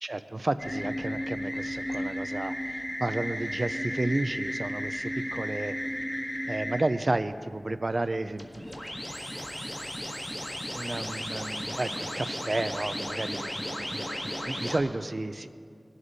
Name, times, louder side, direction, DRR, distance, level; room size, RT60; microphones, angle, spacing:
voice 1, 0.0-5.7 6.5-8.6 10.7-14.1 14.5-15.5, right 2 dB, 55° right, 11 dB, 0.5 m, -32 dB
sound 1, 0.6-6.8 8.3-14.8, equal, 25° left, 1.7 m, -34 dB
20.0 x 8.0 x 4.1 m, 2.1 s
wide cardioid pair, 50°, 0 cm